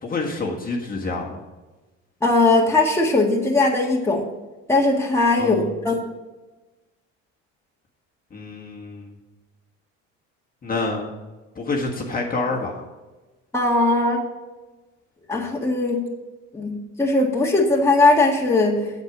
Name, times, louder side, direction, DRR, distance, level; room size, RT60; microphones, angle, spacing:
voice 1, 0.0-1.4 5.4-5.7 8.3-9.1 10.6-11.1 11.5-12.8, left 3 dB, 30° left, -1 dB, 1.6 m, -27 dB
voice 2, 2.2-4.3 4.7-5.9 13.5-14.3 15.3-16.0 16.5-18.9, left 2 dB, 10° left, -1 dB, 1.7 m, -19 dB
8.1 x 7.8 x 6.0 m, 1.2 s
cardioid pair, 110°, 31 cm